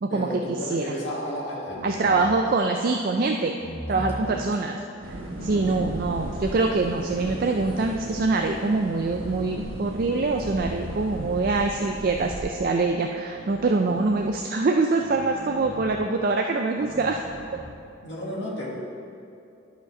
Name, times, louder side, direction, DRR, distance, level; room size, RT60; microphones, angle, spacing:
voice 1, 0.1-2.6 4.1-4.7 5.4-5.9 18.0-18.8, equal, 65° left, -4 dB, 1.8 m, -33 dB
sound 1, 1.7-2.7 3.6-4.5 5.4-6.2 6.8-8.2 8.9-10.0 10.6-12.5 13.3-14.4 15.0-16.1 16.7-17.7, equal, 40° left, 0.9 m, -40 dB
voice 2, 1.8-3.5 3.9-4.8 5.1-5.2 5.4-17.2, right 3 dB, 45° right, 3 dB, 0.4 m, -24 dB
sound 2, 5.0-12.4, right 1 dB, 85° right, 1.2 m, -36 dB
11.5 x 5.1 x 5.3 m, 2.5 s
head